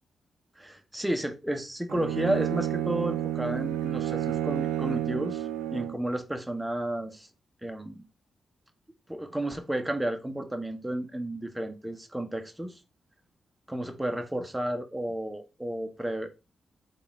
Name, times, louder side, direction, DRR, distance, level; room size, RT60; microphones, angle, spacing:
voice 1, 0.6-7.3 7.6-8.0 9.1-12.8 13.7-16.3, right 1 dB, 10° right, 0.8 m, -32 dB
Bowed string instrument, 1.9-6.1, right 12 dB, 90° right, 0.4 m, -30 dB
3.7 x 2.5 x 4.4 m
supercardioid pair, 45°, 0 cm